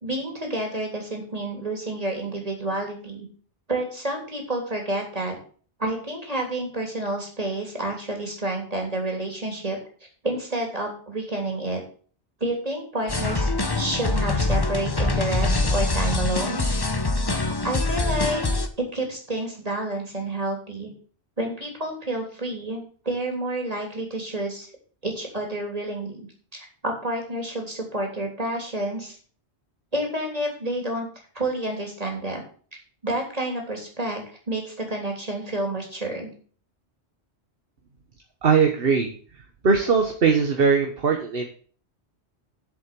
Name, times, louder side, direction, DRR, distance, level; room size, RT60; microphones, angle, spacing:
voice 1, 0.0-3.3 3.7-5.4 5.8-9.8 10.2-11.8 12.4-16.6 17.6-18.4 18.9-20.9 21.4-24.7 25.0-26.2 26.5-29.2 29.9-31.1 31.4-32.4 33.0-34.2 34.5-36.3, right 1 dB, 35° right, 1 dB, 3.4 m, -29 dB
sound 1, 13.1-18.7, left 2 dB, 25° left, 0.9 m, -24 dB
voice 2, 38.4-39.1 39.6-41.5, right 5 dB, 60° right, 3 dB, 1.4 m, -20 dB
7.6 x 7.6 x 7.6 m, 0.43 s
omnidirectional pair, 1.1 m